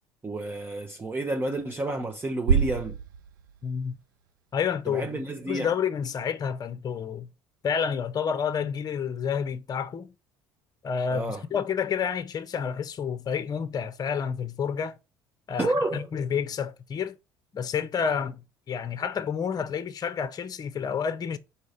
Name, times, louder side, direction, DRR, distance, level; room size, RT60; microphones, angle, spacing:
voice 1, 0.2-3.0 4.9-5.7 11.1-11.4 15.6-16.1, right 2 dB, 20° right, 1.0 m, -30 dB
sound 1, 2.5-4.6, right 7 dB, 90° right, 0.4 m, -28 dB
voice 2, 3.6-3.9 4.5-5.2 5.5-7.3 7.6-10.1 10.8-15.0 15.5-17.2 17.5-18.4 18.7-21.4, left 7 dB, 35° left, 0.8 m, -29 dB
5.4 x 4.4 x 5.0 m
hypercardioid pair, 70°, 11 cm